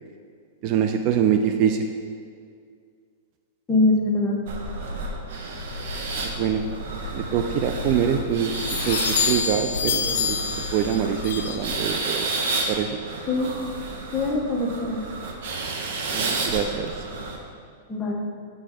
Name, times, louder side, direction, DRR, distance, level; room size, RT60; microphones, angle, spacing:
voice 1, 0.6-1.9 6.2-6.6 7.1-8.5 8.9-9.0 9.3-10.4 10.7-12.3 12.7-12.9 16.1-16.9, right 8 dB, 40° right, 5 dB, 0.3 m, -24 dB
voice 2, 3.7-4.4 13.3-13.5 14.1-15.0 17.9-18.1, left 2 dB, 15° left, -2 dB, 0.9 m, -22 dB
sound 1, 4.5-17.4, right 3 dB, 65° right, 0.8 m, -31 dB
sound 2, 5.6-12.0, left 6 dB, 70° left, 0.5 m, -29 dB
6.0 x 3.7 x 4.8 m, 2.2 s
hypercardioid pair, 145°, 0 cm